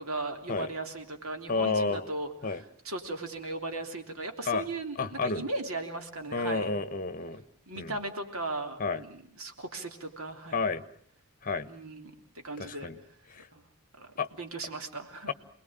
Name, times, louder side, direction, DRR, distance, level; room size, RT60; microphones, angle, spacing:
voice 1, 0.0-6.7 7.7-10.6 11.7-12.1 12.4-12.9 13.5-13.6 14.0-14.1 14.4-15.3, right 2 dB, 65° right, 5 dB, 3.3 m, -37 dB
voice 2, 1.5-2.0 2.4-2.6 4.5-4.7 5.0-5.4 6.3-7.4 7.8-8.0 8.8-9.0 10.5-10.8 11.4-11.7 12.6-13.0 13.3-13.5 14.2-14.3 15.3-15.4, left 4 dB, 40° left, 13 dB, 1.3 m, -30 dB
28.5 x 20.5 x 9.0 m, 0.65 s
head